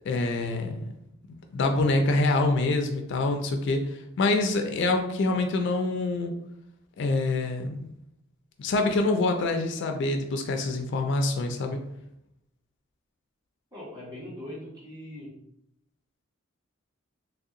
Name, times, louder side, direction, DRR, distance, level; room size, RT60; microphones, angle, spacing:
voice 1, 0.1-0.9 1.5-6.3 7.0-7.9 8.6-11.8, left 2 dB, 60° left, 5 dB, 0.3 m, -26 dB
voice 2, 13.7-15.3, left 1 dB, 20° right, -7 dB, 1.4 m, -41 dB
3.2 x 2.7 x 2.5 m, 0.80 s
head